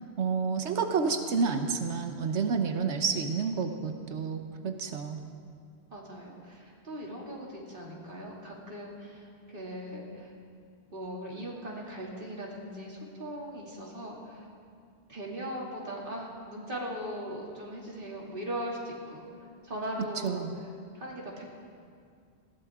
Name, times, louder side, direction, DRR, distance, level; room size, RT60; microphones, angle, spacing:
voice 1, 0.2-5.3 20.2-20.6, right 5 dB, 80° right, 6 dB, 1.2 m, -29 dB
voice 2, 5.9-10.3 10.9-14.5 15.1-19.2 19.6-21.4, equal, 50° right, -3 dB, 2.7 m, -39 dB
20.0 x 16.5 x 3.6 m, 2.2 s
omnidirectional pair, 1.1 m